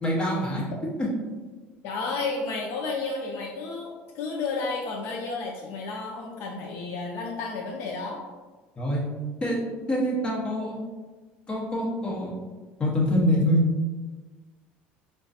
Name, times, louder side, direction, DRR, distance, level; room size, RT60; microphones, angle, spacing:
voice 1, 0.0-0.7 8.8-9.1 9.4-9.6 9.9-10.8 11.5-12.3 12.8-13.6, equal, 20° left, -5 dB, 1.1 m, -25 dB
voice 2, 1.8-8.2, left 3 dB, 65° left, 0 dB, 0.5 m, -32 dB
4.7 x 2.2 x 2.6 m, 1.3 s
cardioid pair, 130°, 5 cm